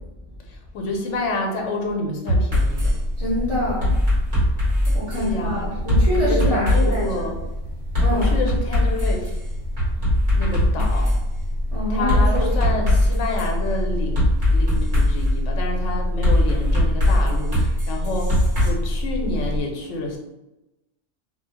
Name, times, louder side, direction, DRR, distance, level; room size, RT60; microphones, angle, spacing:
voice 1, 0.5-2.9 5.2-5.7 6.1-7.4 8.1-9.4 10.3-11.1 11.9-20.2, left 2 dB, 85° left, 1 dB, 0.9 m, -29 dB
sound 1, 2.3-2.9 3.8-5.3 5.9-7.1 7.9-9.3 9.8-11.2 12.1-13.5 14.2-15.3 16.2-18.7, left 1 dB, 45° right, 1.2 m, -20 dB
sound 2, 2.6-19.6, equal, 85° right, 1.1 m, -27 dB
voice 2, 3.2-3.9 4.9-7.1 8.0-8.5 10.7-10.9 11.7-12.7, equal, 40° left, -8 dB, 0.6 m, -26 dB
2.7 x 2.0 x 2.8 m, 0.97 s
omnidirectional pair, 1.2 m